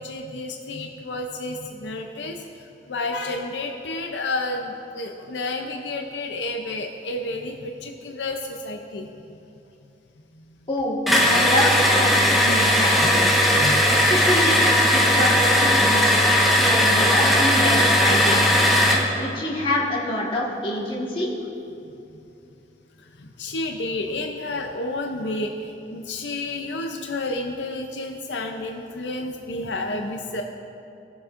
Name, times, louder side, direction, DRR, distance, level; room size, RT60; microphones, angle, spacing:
voice 1, 0.0-2.4 2.9-9.1 13.6-14.0 23.2-30.4, left 2 dB, 80° left, 3 dB, 0.6 m, -30 dB
voice 2, 10.7-11.0 11.2-13.3 13.9-16.1 16.6-18.5 19.2-21.3, left 1 dB, 30° left, -4 dB, 1.6 m, -26 dB
sound 1, 11.1-19.1, equal, ahead, 1.2 m, -18 dB
18.0 x 6.9 x 2.6 m, 2.7 s
head